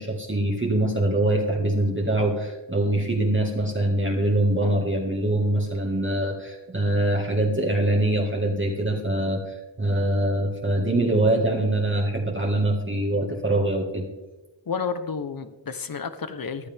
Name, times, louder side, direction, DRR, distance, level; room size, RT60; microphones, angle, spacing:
voice 1, 0.0-14.1, right 1 dB, 25° right, 0 dB, 2.0 m, -24 dB
voice 2, 14.7-16.7, left 5 dB, 50° left, 11 dB, 1.1 m, -31 dB
15.0 x 10.0 x 3.6 m, 1.1 s
cardioid pair, 45°, 43 cm